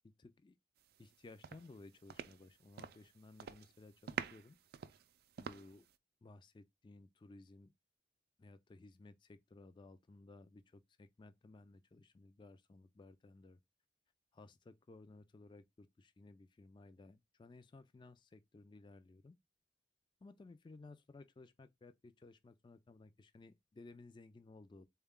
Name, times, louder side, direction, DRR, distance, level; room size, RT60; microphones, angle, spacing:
voice 1, 0.2-0.6 1.0-4.6 5.4-5.8 6.2-7.7 8.4-13.6 14.3-19.3 20.2-24.9, left 2 dB, 25° left, 0.3 m, -58 dB
sound 1, 0.9-1.1 1.4-3.1 3.4-3.7 4.1-5.9, right 7 dB, 60° right, 0.3 m, -46 dB
3.8 x 2.2 x 3.5 m
head